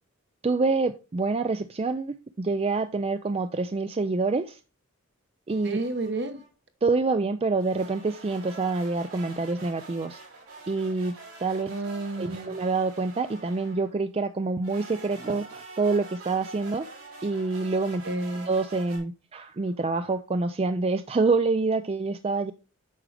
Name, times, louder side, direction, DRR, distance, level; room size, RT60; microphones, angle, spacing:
voice 1, 0.4-4.6 5.5-5.8 6.8-10.2 10.7-11.1 11.4-11.7 12.2-16.9 17.2-18.0 18.5-22.5, right 3 dB, 30° right, 0.4 m, -26 dB
sound 1, 5.5-6.5 7.6-14.0 14.6-19.0, right 3 dB, 80° right, 4.4 m, -45 dB
voice 2, 5.6-6.4 11.7-12.5 18.0-18.5, right 2 dB, 55° right, 1.1 m, -31 dB
8.5 x 6.1 x 3.3 m
head